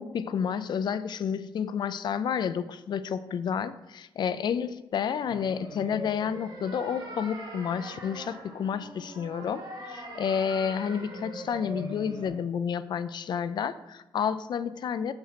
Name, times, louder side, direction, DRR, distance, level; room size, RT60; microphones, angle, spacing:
voice 1, 0.0-15.1, left 7 dB, 55° left, 13 dB, 0.4 m, -30 dB
sound 1, 5.2-12.3, right 1 dB, 50° right, 2.8 m, -42 dB
7.0 x 4.4 x 5.7 m, 0.99 s
cardioid pair, 130°, 9 cm